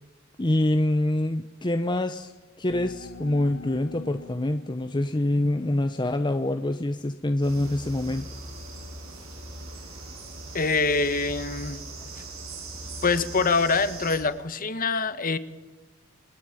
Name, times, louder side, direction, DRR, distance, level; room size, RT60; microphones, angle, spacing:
voice 1, 0.4-2.3 2.6-8.3, left 1 dB, 20° left, 8 dB, 0.8 m, -25 dB
sound 1, 2.7-6.2, left 3 dB, 85° left, 1.6 m, -45 dB
sound 2, 7.4-14.2, right 2 dB, 80° right, 6.7 m, -40 dB
voice 2, 10.5-11.8 13.0-15.4, left 4 dB, 40° left, 13 dB, 1.4 m, -24 dB
28.0 x 20.0 x 9.1 m, 1.3 s
head